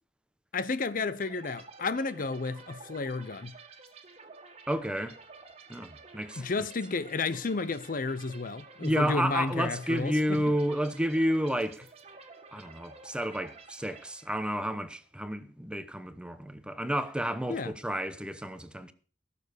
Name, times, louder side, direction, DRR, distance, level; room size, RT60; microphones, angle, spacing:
voice 1, 0.5-3.5 6.4-10.4 17.5-17.7, left 3 dB, 50° left, 0.7 m, -32 dB
sound 1, 1.2-14.8, right 4 dB, 35° right, 1.9 m, -51 dB
voice 2, 4.7-5.2 5.7-6.5 8.8-11.9 12.5-18.9, equal, 5° right, 0.9 m, -31 dB
17.0 x 6.9 x 6.7 m
head